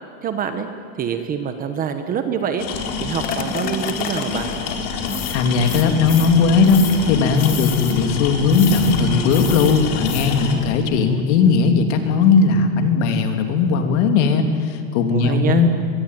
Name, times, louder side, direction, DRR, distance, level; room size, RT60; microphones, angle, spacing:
voice 1, 0.2-0.7 1.0-2.6 3.0-4.5 15.1-15.6, right 7 dB, 20° right, 8 dB, 1.1 m, -25 dB
sound 1, 2.6-10.6, left 5 dB, 70° left, 4.2 m, -28 dB
sound 2, 2.7-10.8, left 7 dB, 20° left, 1.1 m, -31 dB
voice 2, 5.3-15.7, left 5 dB, 50° left, 6 dB, 3.0 m, -17 dB
23.5 x 23.0 x 9.4 m, 2.2 s
supercardioid pair, 175°, 44 cm